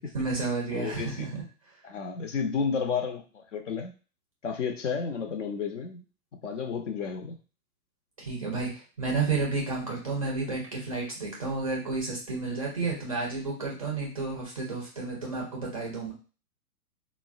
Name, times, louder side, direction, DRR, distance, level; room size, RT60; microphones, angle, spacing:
voice 1, 0.1-1.4 8.2-8.7 9.0-16.1, right 3 dB, 25° right, -2 dB, 0.4 m, -31 dB
voice 2, 0.7-1.3 1.8-3.9 4.4-6.0 6.4-7.4, left 6 dB, 50° left, 6 dB, 0.6 m, -31 dB
3.6 x 2.0 x 2.4 m, 0.36 s
figure-of-eight pair, 115°, 48 cm